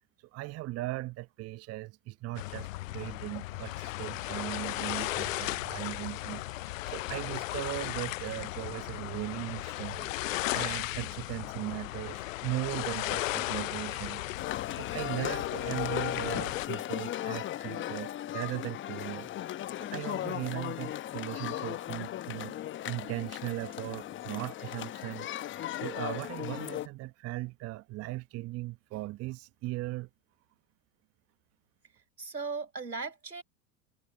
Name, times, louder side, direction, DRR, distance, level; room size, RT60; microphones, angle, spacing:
voice 1, 0.3-10.1 10.5-14.2 14.7-19.3 19.8-22.6 22.8-25.3 25.8-30.1, right 18 dB, 30° right, 1.0 m, -38 dB
sound 1, 2.3-16.7, left 18 dB, 55° left, 0.6 m, -36 dB
sound 2, 14.4-26.9, left 13 dB, 25° left, 1.0 m, -36 dB
voice 2, 32.0-33.4, right 4 dB, 90° right, 5.5 m, -38 dB
figure-of-eight pair, 90°, 48 cm